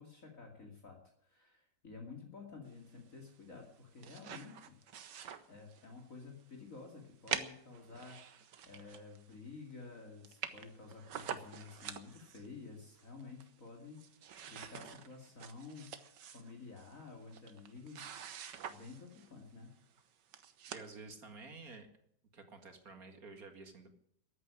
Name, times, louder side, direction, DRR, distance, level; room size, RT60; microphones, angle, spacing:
voice 1, 0.0-4.8 5.5-15.9 16.3-19.7, left 4 dB, 45° left, 1 dB, 2.8 m, -52 dB
sound 1, 3.7-6.0 6.4-6.5 7.3-9.3 9.7-9.8 10.0-10.1 10.2-12.5 13.0-13.7 13.9-19.3 20.0-20.1 20.3-20.9, right 8 dB, 70° right, 1.7 m, -46 dB
voice 2, 20.7-21.9 22.3-24.0, right 3 dB, 50° right, 6 dB, 2.4 m, -51 dB
14.0 x 9.8 x 9.7 m, 0.69 s
omnidirectional pair, 2.0 m